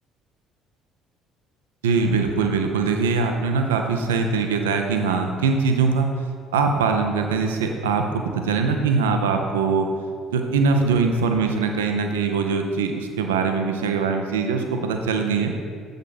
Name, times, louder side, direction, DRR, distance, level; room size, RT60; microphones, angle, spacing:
voice 1, 1.8-6.1 6.5-9.9 10.3-15.5, right 4 dB, 75° right, 4 dB, 0.5 m, -22 dB
7.4 x 5.1 x 4.1 m, 2.1 s
figure-of-eight pair, 50°, 0 cm